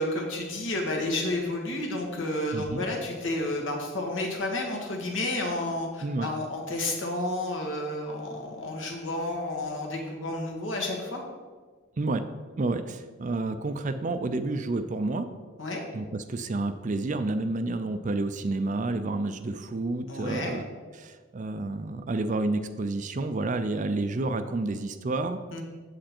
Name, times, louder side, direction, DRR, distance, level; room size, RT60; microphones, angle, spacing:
voice 1, 0.0-11.2 15.6-15.8 20.1-20.5 25.5-25.6, left 1 dB, 65° left, 1 dB, 1.6 m, -31 dB
voice 2, 2.5-2.8 6.0-6.3 12.0-12.2 12.6-15.3 15.9-20.6 20.9-25.4, right 2 dB, 40° right, 10 dB, 0.4 m, -30 dB
7.7 x 7.5 x 4.4 m, 1.5 s
head